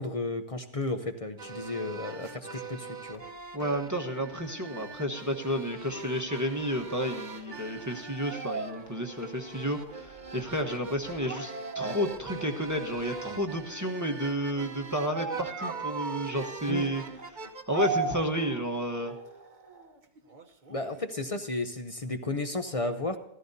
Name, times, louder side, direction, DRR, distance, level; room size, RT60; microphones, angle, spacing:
voice 1, 0.0-3.2 16.7-16.9 20.7-23.2, left 2 dB, 35° left, 7 dB, 0.8 m, -33 dB
sound 1, 1.4-21.0, right 4 dB, 40° right, 1.1 m, -39 dB
voice 2, 3.5-17.0 17.7-19.1, equal, 15° right, 3 dB, 1.2 m, -31 dB
14.5 x 14.5 x 2.8 m, 0.84 s
omnidirectional pair, 1.2 m